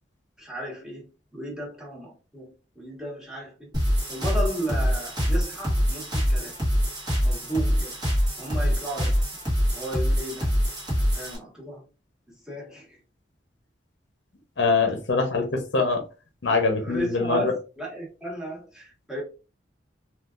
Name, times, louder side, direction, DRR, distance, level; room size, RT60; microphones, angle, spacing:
voice 1, 0.4-3.7 4.1-6.6 7.2-8.0 8.4-9.2 9.7-10.5 11.1-11.8 12.3-13.0 16.8-19.2, right 1 dB, 5° right, 1.3 m, -34 dB
sound 1, 3.7-11.4, equal, 20° right, 1.2 m, -24 dB
voice 2, 14.6-16.0 16.4-17.5, left 4 dB, 70° left, 0.8 m, -23 dB
3.8 x 2.4 x 2.4 m
head